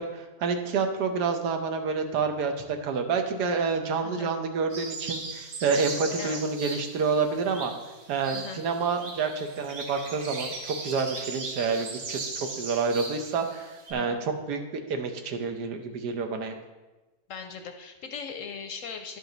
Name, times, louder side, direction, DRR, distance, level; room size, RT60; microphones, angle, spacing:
voice 1, 0.0-7.7 8.1-16.5, right 5 dB, 85° right, 6 dB, 1.4 m, -28 dB
sound 1, 4.7-13.9, right 3 dB, 65° right, 1.5 m, -38 dB
voice 2, 17.3-19.2, left 6 dB, 65° left, 6 dB, 0.8 m, -39 dB
11.0 x 5.2 x 3.9 m, 1.2 s
omnidirectional pair, 1.7 m